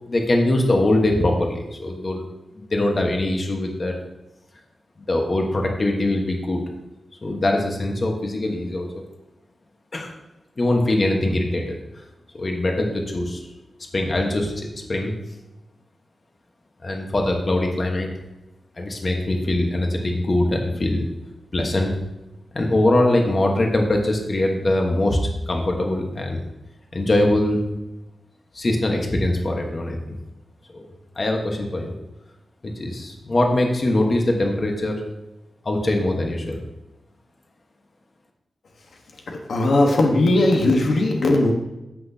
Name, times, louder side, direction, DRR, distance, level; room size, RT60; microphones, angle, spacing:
voice 1, 0.1-2.2 2.6-3.9 5.1-6.6 7.2-9.0 9.9-10.1 10.6-11.8 12.3-13.4 13.9-15.1 16.8-18.1 18.8-21.0 21.5-21.9 22.5-25.2 25.5-26.4 26.9-27.6 28.5-30.2 30.7-30.9 31.1-31.9 32.6-35.0 35.6-36.6, left 1 dB, 40° left, 1 dB, 1.2 m, -22 dB
voice 2, 39.3-41.5, left 2 dB, 75° left, 1 dB, 1.2 m, -18 dB
13.5 x 6.1 x 2.8 m, 0.98 s
wide cardioid pair, 120°, 0 cm